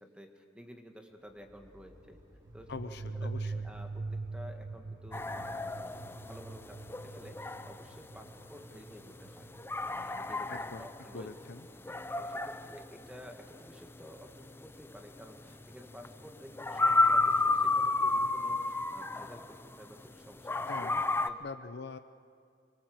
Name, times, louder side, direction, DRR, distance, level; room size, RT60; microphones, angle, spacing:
voice 1, 0.0-2.2 2.5-9.5 9.9-11.3 11.7-20.5 20.8-20.9 21.3-21.4, equal, 5° right, 4 dB, 1.8 m, -52 dB
sound 1, 1.0-6.2, equal, 20° right, 4.4 m, -60 dB
sound 2, 2.4-10.8, right 3 dB, 55° right, 1.0 m, -43 dB
voice 2, 2.7-3.5 10.5-10.9 11.1-11.7 20.5-21.0 21.4-22.0, left 4 dB, 60° left, 10 dB, 0.7 m, -43 dB
sound 3, 5.1-20.1 20.4-21.3, left 3 dB, 10° left, 0.6 m, -31 dB
24.0 x 23.0 x 7.9 m, 2.2 s
head